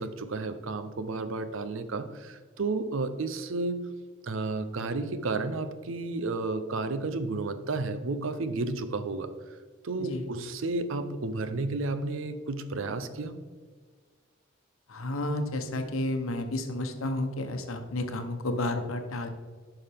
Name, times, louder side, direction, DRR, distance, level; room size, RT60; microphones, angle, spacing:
voice 1, 0.0-3.9 4.2-9.3 9.8-13.4, right 3 dB, 70° right, 10 dB, 0.6 m, -32 dB
voice 2, 10.0-10.3 14.9-19.3, left 1 dB, 85° left, 6 dB, 0.9 m, -31 dB
9.8 x 5.7 x 3.5 m, 1.5 s
head